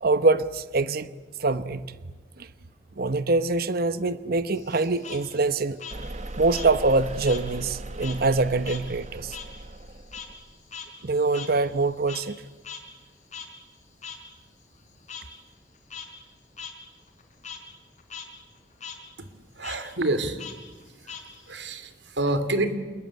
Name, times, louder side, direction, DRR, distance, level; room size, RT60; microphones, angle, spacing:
voice 1, 0.0-1.1 1.4-1.8 3.0-5.8 6.4-9.4 11.0-12.4, right 3 dB, 60° right, 1.0 m, -24 dB
Frog, 4.5-7.5 7.8-12.4 12.6-12.8 13.3-13.5 14.0-14.2 15.1-15.2 15.7-16.1 16.6-16.7 17.1-17.6 18.0-18.2 18.5-19.0 19.6-19.8 20.4-21.6, left 6 dB, 40° left, 4.6 m, -41 dB
sound 1, 5.9-10.4, right 1 dB, 40° right, 1.3 m, -38 dB
voice 2, 19.6-20.4 21.0-21.2 21.5-22.7, right 2 dB, 80° right, 2.9 m, -27 dB
28.0 x 20.5 x 8.9 m
head